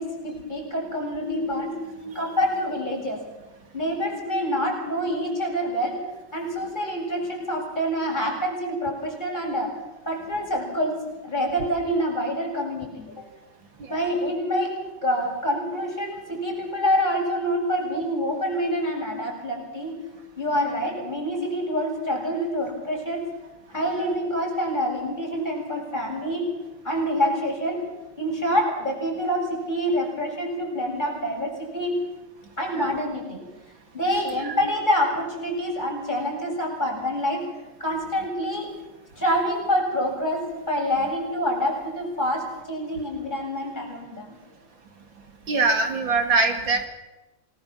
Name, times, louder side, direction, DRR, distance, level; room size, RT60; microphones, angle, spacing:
voice 1, 0.0-1.7 2.1-3.2 3.7-6.0 6.3-9.7 10.1-11.0 11.2-13.1 13.9-20.0 20.4-23.2 23.7-26.5 26.8-27.8 28.2-31.9 32.6-33.5 33.9-37.4 37.8-38.7 39.2-44.4, equal, 20° left, -1 dB, 7.8 m, -26 dB
voice 2, 1.2-2.2 32.8-32.9 45.5-46.9, right 3 dB, 70° right, 4 dB, 3.2 m, -24 dB
28.0 x 20.0 x 7.4 m, 1.0 s
omnidirectional pair, 2.2 m